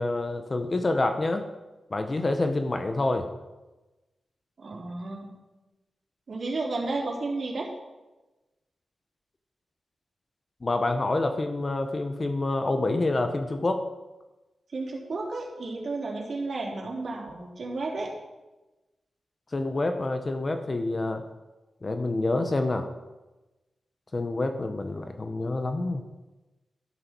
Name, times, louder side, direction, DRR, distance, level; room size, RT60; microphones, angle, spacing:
voice 1, 0.0-1.4 1.9-3.3 10.6-13.8 19.5-21.2 21.8-22.9 24.1-26.0, left 2 dB, 30° left, 7 dB, 1.0 m, -27 dB
voice 2, 4.6-5.3 6.3-7.7 14.7-18.1, right 3 dB, 55° right, -2 dB, 3.7 m, -32 dB
12.5 x 12.5 x 4.6 m, 1.1 s
wide cardioid pair, 125°, 0 cm